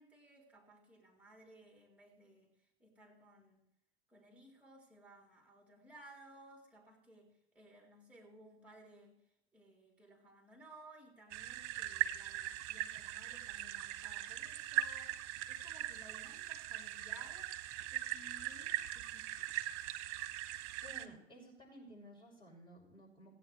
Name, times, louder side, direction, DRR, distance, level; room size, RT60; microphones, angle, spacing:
voice 1, 0.0-2.5 2.8-3.6 4.1-9.2 9.5-17.5 17.9-19.8, right 1 dB, 5° right, 0 dB, 3.3 m, -59 dB
sound 1, 11.3-21.1, right 14 dB, 50° right, 1.2 m, -40 dB
voice 2, 20.8-23.3, equal, 15° left, -2 dB, 6.4 m, -55 dB
16.0 x 9.5 x 4.5 m, 0.83 s
hypercardioid pair, 100°, 34 cm